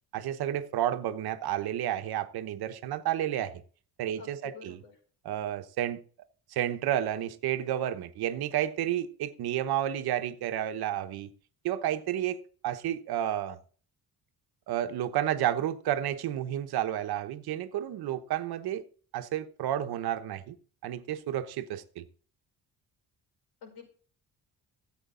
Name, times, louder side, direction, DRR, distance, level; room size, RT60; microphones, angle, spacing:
voice 1, 0.1-3.6 4.0-4.8 5.2-6.0 6.5-11.3 11.6-13.6 14.7-18.8 19.1-20.6 20.8-22.0, right 11 dB, 70° right, 1.1 m, -31 dB
voice 2, 4.2-4.9 23.6-23.9, left 6 dB, 75° left, 5.7 m, -48 dB
14.5 x 7.9 x 3.8 m
cardioid pair, 165°, 39 cm